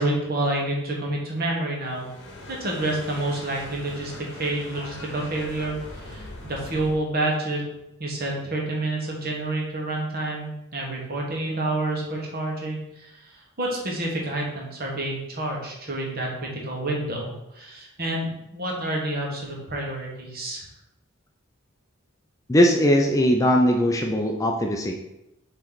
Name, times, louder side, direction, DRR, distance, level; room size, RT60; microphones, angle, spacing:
voice 1, 0.0-2.1 2.5-7.6 8.0-13.1 13.6-20.7, right 2 dB, 45° right, -1 dB, 1.4 m, -28 dB
sound 1, 1.8-7.0, left 1 dB, 55° left, 1.3 m, -40 dB
voice 2, 22.5-24.9, equal, 15° left, 2 dB, 0.4 m, -20 dB
7.4 x 3.2 x 4.0 m, 0.87 s
head